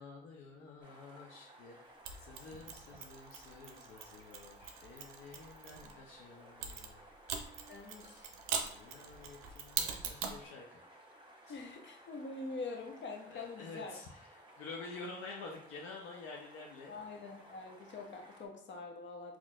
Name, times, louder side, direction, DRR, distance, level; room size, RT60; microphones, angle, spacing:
voice 1, 0.0-1.8 2.2-7.0 8.5-10.8 11.4-11.6 13.3-16.9, left 3 dB, 85° left, -2 dB, 0.6 m, -50 dB
sound 1, 0.8-18.5, right 1 dB, 20° right, 1.1 m, -58 dB
Mechanisms, 2.1-5.9 6.6-10.4, right 7 dB, 90° right, 0.5 m, -42 dB
voice 2, 7.7-8.3 11.5-14.0 16.9-19.4, left 3 dB, 60° left, 3 dB, 0.8 m, -45 dB
4.0 x 2.9 x 2.3 m, 0.65 s
supercardioid pair, 55°, 21 cm